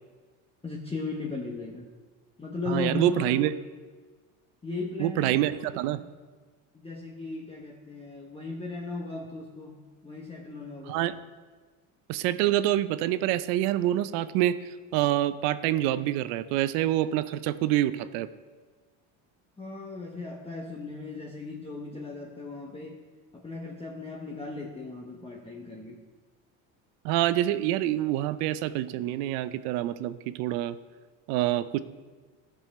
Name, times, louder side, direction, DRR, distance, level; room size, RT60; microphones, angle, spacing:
voice 1, 0.6-1.9 2.4-3.4 4.6-5.4 5.9-6.0 6.7-11.0 19.6-23.0 23.3-26.0, left 3 dB, 15° left, -2 dB, 1.2 m, -37 dB
voice 2, 2.7-3.5 5.0-6.0 10.9-11.2 12.1-14.6 14.9-18.3 27.0-30.8 31.3-31.8, right 13 dB, 75° right, 14 dB, 0.6 m, -26 dB
13.5 x 5.5 x 4.2 m, 1.4 s
supercardioid pair, 100°, 42 cm